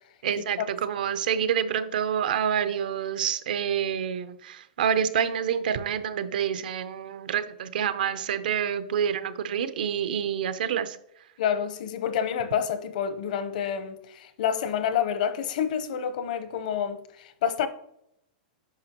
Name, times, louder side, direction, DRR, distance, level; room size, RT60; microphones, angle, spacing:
voice 1, 0.2-11.0, right 8 dB, 75° right, 0.7 m, -27 dB
voice 2, 11.4-17.7, left 8 dB, 60° left, 0.9 m, -28 dB
9.5 x 5.8 x 3.0 m
supercardioid pair, 160°, 5 cm